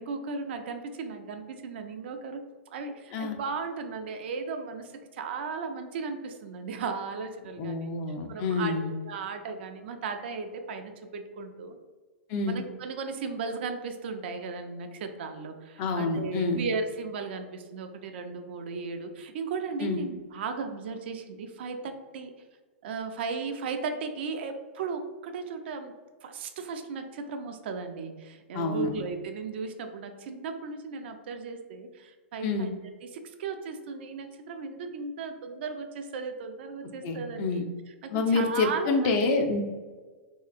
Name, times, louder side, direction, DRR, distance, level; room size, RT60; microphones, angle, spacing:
voice 1, 0.0-7.9 8.3-11.8 12.5-22.3 22.8-25.9 26.2-39.2, right 4 dB, 60° right, 6 dB, 0.4 m, -36 dB
voice 2, 7.6-8.9 12.3-12.6 15.8-16.6 19.8-20.0 28.5-28.9 32.4-32.7 37.0-37.6 38.1-39.6, left 3 dB, 40° left, 4 dB, 0.5 m, -27 dB
3.2 x 2.8 x 2.4 m, 1.4 s
hypercardioid pair, 115°, 7 cm